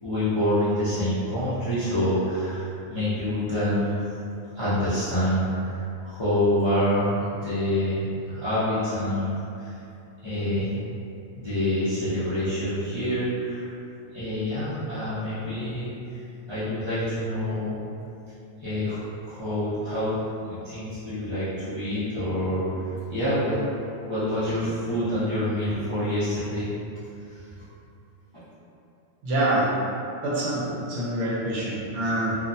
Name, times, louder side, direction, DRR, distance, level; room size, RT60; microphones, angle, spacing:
voice 1, 0.0-4.1 4.5-9.8 10.2-10.7 11.4-13.7 14.1-17.8 18.6-20.2 20.4-23.6 24.0-26.7 27.3-27.4 28.3-28.4, equal, 45° left, -14 dB, 0.3 m, -27 dB
voice 2, 29.2-29.7 30.2-32.4, right 1 dB, 70° right, -6 dB, 0.9 m, -26 dB
2.4 x 2.1 x 2.5 m, 2.7 s
omnidirectional pair, 1.3 m